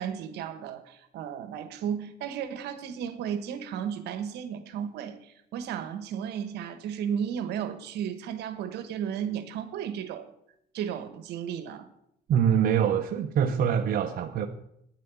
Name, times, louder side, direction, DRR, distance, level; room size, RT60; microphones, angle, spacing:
voice 1, 0.0-10.3 10.7-11.9, right 8 dB, 80° right, 11 dB, 1.4 m, -34 dB
voice 2, 12.3-14.5, right 8 dB, 60° right, 5 dB, 0.9 m, -24 dB
9.9 x 7.5 x 8.4 m, 0.73 s
cardioid pair, 110°, 17 cm